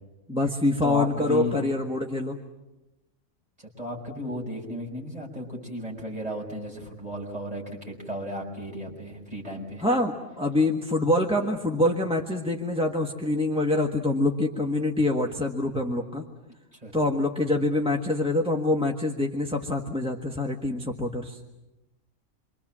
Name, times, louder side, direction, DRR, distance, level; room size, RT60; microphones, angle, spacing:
voice 1, 0.3-2.4 9.8-16.2 16.9-21.4, left 2 dB, 5° right, 1 dB, 1.4 m, -25 dB
voice 2, 0.8-1.6 3.8-9.9 16.8-16.9, equal, 30° right, -1 dB, 5.9 m, -34 dB
27.5 x 24.5 x 7.4 m, 1.0 s
omnidirectional pair, 1.3 m